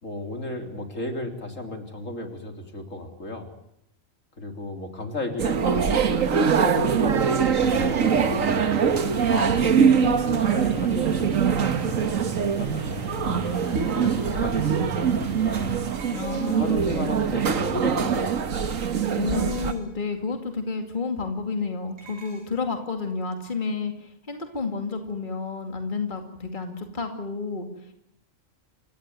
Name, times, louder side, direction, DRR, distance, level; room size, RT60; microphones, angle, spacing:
voice 1, 0.0-3.5 4.4-8.5 9.3-15.8 16.4-18.7, left 2 dB, 70° left, 4 dB, 3.9 m, -34 dB
sound 1, 5.4-19.7, right 7 dB, 75° right, 1.8 m, -23 dB
sound 2, 7.6-15.8, right 1 dB, 15° right, 4.5 m, -36 dB
sound 3, 13.8-14.6 16.0-16.9 19.3-20.0 22.0-22.5, right 5 dB, 50° right, 6.6 m, -48 dB
voice 2, 16.1-16.8 19.2-27.9, left 4 dB, 35° left, 4 dB, 2.5 m, -30 dB
29.0 x 16.5 x 9.3 m, 0.79 s
omnidirectional pair, 1.4 m